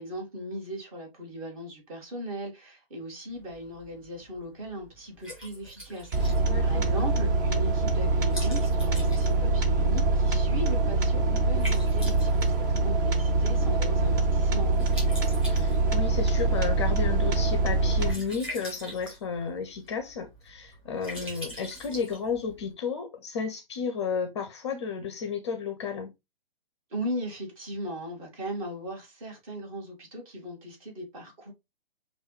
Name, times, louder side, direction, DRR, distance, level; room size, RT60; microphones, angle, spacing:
voice 1, 0.0-14.8 26.9-31.5, equal, 35° right, 2.2 m, -38 dB
Liquid, 3.3-22.7, equal, 5° right, 2.2 m, -45 dB
sound 1, 6.1-18.1, right 3 dB, 20° right, 0.5 m, -24 dB
voice 2, 6.5-6.9 11.2-11.4 15.5-26.1, left 6 dB, 30° left, 0.5 m, -33 dB
6.2 x 2.6 x 3.1 m
figure-of-eight pair, 130°, 30 cm